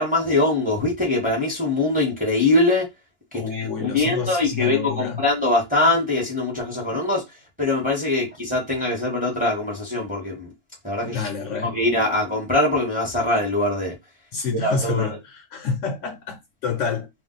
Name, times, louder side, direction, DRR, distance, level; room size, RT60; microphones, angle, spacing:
voice 1, 0.0-2.9 3.5-7.2 7.6-10.5 10.8-11.3 11.6-13.9 14.6-15.1, left 2 dB, 5° right, 0.9 m, -22 dB
voice 2, 3.3-5.2 11.0-11.7 14.3-17.1, left 5 dB, 65° left, 0.9 m, -28 dB
2.5 x 2.2 x 3.8 m
omnidirectional pair, 1.5 m